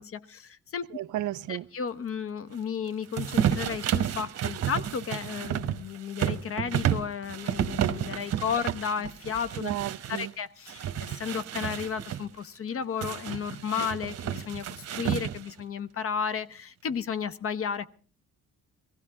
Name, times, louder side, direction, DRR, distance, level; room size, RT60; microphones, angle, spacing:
voice 1, 0.0-0.9 1.5-9.7 10.1-17.9, left 7 dB, 45° left, 0.9 m, -33 dB
voice 2, 0.9-1.7 9.6-10.3, right 14 dB, 80° right, 0.6 m, -33 dB
sound 1, 3.1-10.3 10.7-12.2 13.0-15.6, right 10 dB, 55° right, 1.1 m, -31 dB
18.5 x 15.5 x 3.8 m
cardioid pair, 90°, 30 cm